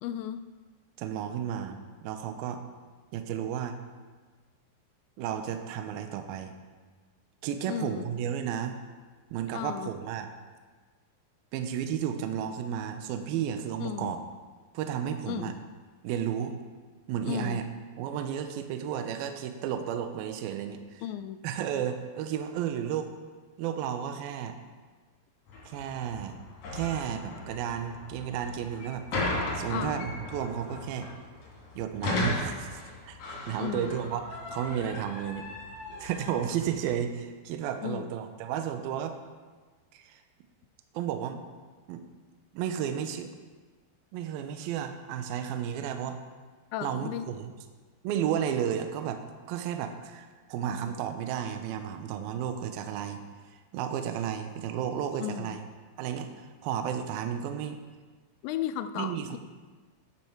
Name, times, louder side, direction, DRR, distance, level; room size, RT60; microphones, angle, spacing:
voice 1, 0.0-0.4 7.7-8.1 9.5-9.9 13.8-14.1 15.3-15.5 17.3-17.6 21.0-21.4 29.7-30.0 33.6-34.0 37.8-38.1 46.7-47.3 55.2-55.6 58.4-59.4, left 11 dB, 85° left, 11 dB, 2.8 m, -34 dB
voice 2, 1.0-2.6 3.1-3.8 5.2-6.5 7.4-8.8 9.3-10.3 11.5-14.2 14.7-15.5 16.0-16.5 17.1-17.6 18.0-21.0 21.4-23.1 23.6-24.6 25.7-26.4 26.7-31.1 31.8-35.4 36.0-39.2 39.9-40.2 40.9-41.4 41.9-42.0 42.5-43.3 44.1-46.2 46.8-47.5 48.0-49.2 49.5-53.2 53.7-55.7 56.0-57.8 59.0-59.4, right 9 dB, 80° right, 7 dB, 2.2 m, -33 dB
sound 1, 25.5-37.0, left 2 dB, 45° left, 3.3 m, -37 dB
12.0 x 9.0 x 4.5 m, 1.4 s
omnidirectional pair, 5.2 m